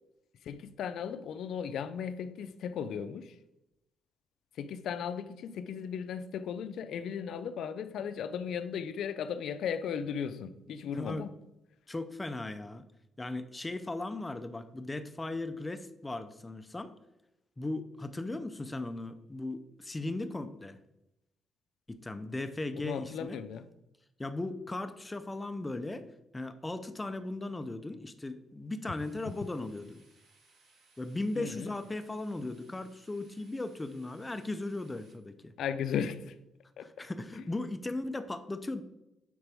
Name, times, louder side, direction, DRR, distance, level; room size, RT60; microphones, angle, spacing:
voice 1, 0.4-3.4 4.6-11.3 22.8-23.7 31.3-31.7 35.6-36.3 36.8-36.9 37.3-37.4, left 7 dB, 75° left, 0.5 m, -36 dB
voice 2, 11.9-12.8 13.2-16.9 17.6-20.8 21.9-23.4 24.2-26.1 26.3-30.0 31.0-35.5 36.8-38.8, left 2 dB, 15° left, 0.6 m, -37 dB
sound 1, 29.0-35.1, right 3 dB, 70° right, 2.1 m, -65 dB
9.4 x 3.9 x 3.5 m
cardioid pair, 90°, 0 cm